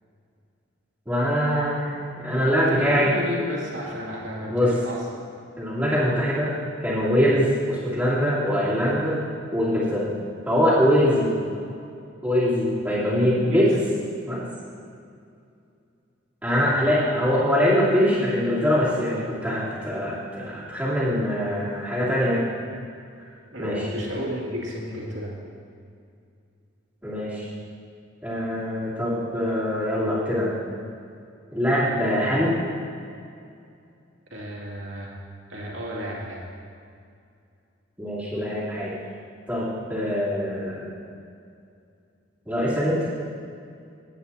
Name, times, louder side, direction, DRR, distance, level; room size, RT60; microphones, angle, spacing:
voice 1, 1.1-3.1 4.5-4.7 5.6-6.5 6.8-9.2 9.5-10.1 10.5-11.3 12.2-13.8 14.3-14.5 16.4-22.4 23.6-23.8 27.0-27.5 28.2-30.6 31.5-32.5 38.0-38.9 39.5-40.9 42.5-43.0, equal, 5° right, -9 dB, 2.8 m, -23 dB
voice 2, 2.5-5.1 13.5-13.6 16.6-16.8 23.5-25.4 34.3-35.2 35.5-36.4, equal, 70° right, -4 dB, 2.4 m, -32 dB
17.0 x 8.9 x 2.8 m, 2.4 s
head